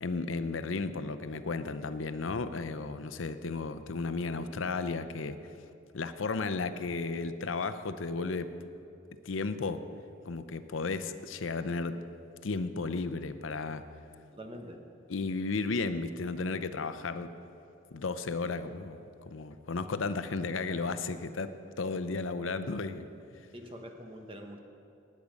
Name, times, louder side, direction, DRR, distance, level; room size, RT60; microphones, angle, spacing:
voice 1, 0.0-5.4 5.9-8.5 9.3-9.8 10.3-12.0 12.4-13.8 15.1-17.3 17.9-21.5 21.8-23.1, left 3 dB, 85° left, 11 dB, 0.6 m, -34 dB
voice 2, 14.3-14.8 23.5-24.6, equal, 25° right, 4 dB, 1.1 m, -44 dB
19.0 x 8.5 x 5.2 m, 2.8 s
head